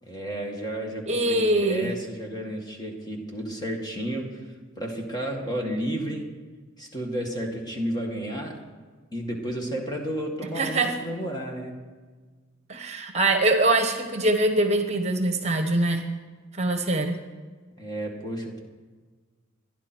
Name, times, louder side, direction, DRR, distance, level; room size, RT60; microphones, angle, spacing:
voice 1, 0.0-6.4 6.8-8.7 9.1-11.9 17.8-18.6, equal, 20° left, 1 dB, 2.1 m, -32 dB
voice 2, 1.1-1.9 10.6-10.9 12.7-16.0 16.6-17.2, right 2 dB, 35° right, 6 dB, 1.2 m, -23 dB
26.5 x 11.0 x 4.6 m, 1.4 s
head